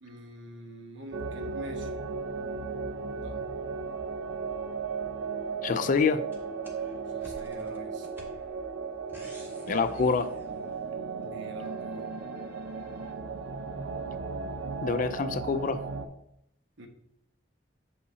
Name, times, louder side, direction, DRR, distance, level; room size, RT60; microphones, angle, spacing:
voice 1, 0.0-1.9 3.2-3.4 7.0-8.1 11.2-12.1 16.8-16.9, equal, 70° right, 4 dB, 1.0 m, -45 dB
sound 1, 1.1-16.1, right 4 dB, 90° right, 0.6 m, -36 dB
voice 2, 5.6-6.2 9.7-10.3 14.8-15.8, left 5 dB, 45° left, 13 dB, 0.3 m, -26 dB
sound 2, 6.3-11.1 11.6-13.1, equal, 10° right, 1.0 m, -51 dB
6.7 x 5.5 x 2.7 m, 0.75 s
head